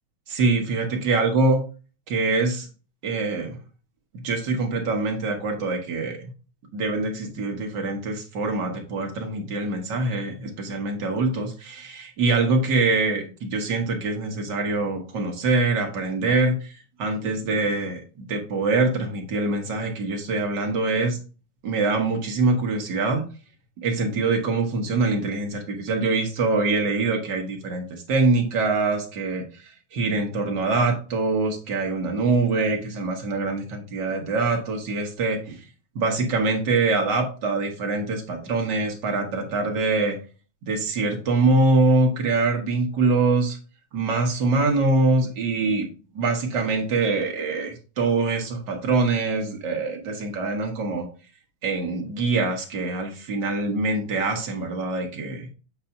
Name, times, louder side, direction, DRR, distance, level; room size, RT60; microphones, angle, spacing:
voice 1, 0.3-1.6 2.1-2.7 3.0-3.6 4.2-6.3 6.7-16.7 17.0-21.2 21.6-23.3 23.8-35.6 35.9-40.2 40.6-43.6 43.9-45.9 46.1-51.1 51.6-55.5, right 3 dB, 60° right, 2 dB, 1.1 m, -24 dB
8.0 x 2.7 x 5.6 m, 0.36 s
omnidirectional pair, 3.4 m